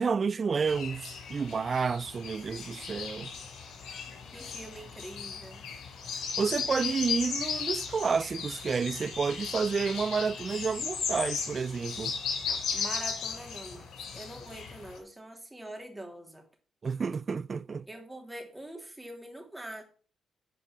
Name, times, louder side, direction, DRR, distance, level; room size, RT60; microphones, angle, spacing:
voice 1, 0.0-3.3 6.4-12.2 16.8-17.9, right 5 dB, 45° right, 0.4 m, -30 dB
sound 1, 0.7-15.0, left 6 dB, 85° left, 3.9 m, -36 dB
voice 2, 4.3-5.7 12.5-16.4 17.9-19.8, right 1 dB, 10° right, 3.0 m, -44 dB
10.5 x 4.8 x 7.4 m
cardioid pair, 85°, 0 cm